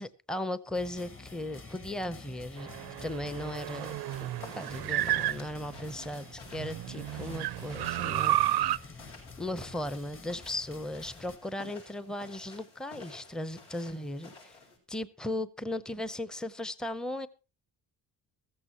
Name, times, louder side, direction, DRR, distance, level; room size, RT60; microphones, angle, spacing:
voice 1, 0.0-2.7 3.0-3.9 4.5-8.7 9.4-14.6 14.9-17.3, left 1 dB, ahead, 0.7 m, -37 dB
sound 1, 0.7-11.4, left 3 dB, 30° left, 1.4 m, -49 dB
sound 2, 2.6-6.0 6.5-8.8, right 14 dB, 65° right, 0.6 m, -32 dB
sound 3, 4.0-14.8, left 3 dB, 75° left, 6.8 m, -52 dB
15.0 x 14.5 x 2.9 m
cardioid pair, 95°, 42 cm